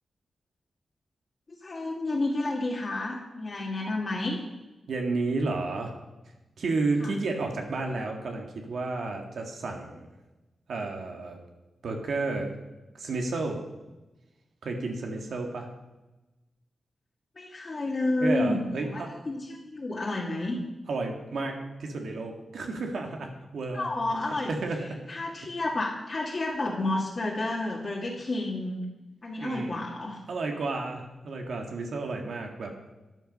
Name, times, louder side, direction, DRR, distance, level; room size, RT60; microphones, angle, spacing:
voice 1, 1.6-4.4 7.0-7.1 17.4-20.6 23.7-24.5 25.1-28.9 29.2-30.2, left 2 dB, 40° left, -3 dB, 1.8 m, -30 dB
voice 2, 4.9-5.9 6.6-10.1 10.7-11.4 11.8-12.5 13.0-13.6 14.6-15.7 18.2-19.1 20.9-23.9 24.5-24.8 29.4-29.8 30.3-32.7, right 3 dB, 75° right, 3 dB, 2.0 m, -31 dB
13.0 x 9.7 x 5.4 m, 1.1 s
wide cardioid pair, 135°, 0 cm